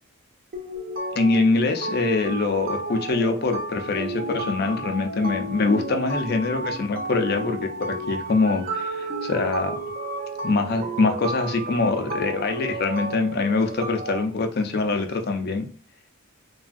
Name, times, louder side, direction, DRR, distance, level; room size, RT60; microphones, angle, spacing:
sound 1, 0.5-14.2, right 2 dB, 45° right, 0.4 m, -32 dB
voice 1, 1.1-9.8 10.4-15.7, left 3 dB, 50° left, 6 dB, 0.5 m, -24 dB
3.3 x 2.3 x 2.5 m, 0.42 s
head